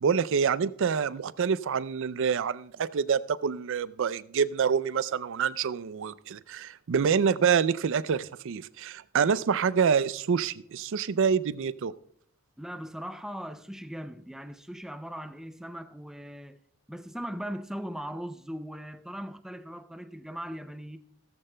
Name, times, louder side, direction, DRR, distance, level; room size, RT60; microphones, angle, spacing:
voice 1, 0.0-11.9, right 6 dB, 60° right, 0.4 m, -27 dB
voice 2, 12.6-16.6 16.9-21.0, equal, ahead, 0.4 m, -39 dB
17.0 x 14.5 x 2.2 m
head